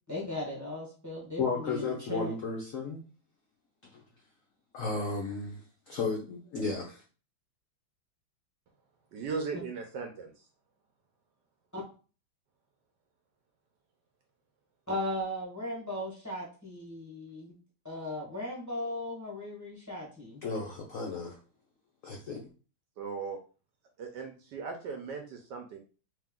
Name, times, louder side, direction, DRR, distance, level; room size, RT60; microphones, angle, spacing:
voice 1, 0.1-2.3 11.7-11.8 14.9-17.5 17.8-20.4, left 1 dB, 15° left, -3 dB, 0.7 m, -37 dB
voice 2, 1.4-3.0 3.8-4.0 4.7-7.0 20.4-21.4 22.0-22.4, left 4 dB, 80° left, 0 dB, 0.7 m, -34 dB
voice 3, 9.1-10.3 23.0-23.4 24.0-25.8, right 5 dB, 70° right, 3 dB, 1.1 m, -37 dB
3.4 x 2.9 x 3.6 m, 0.36 s
omnidirectional pair, 2.3 m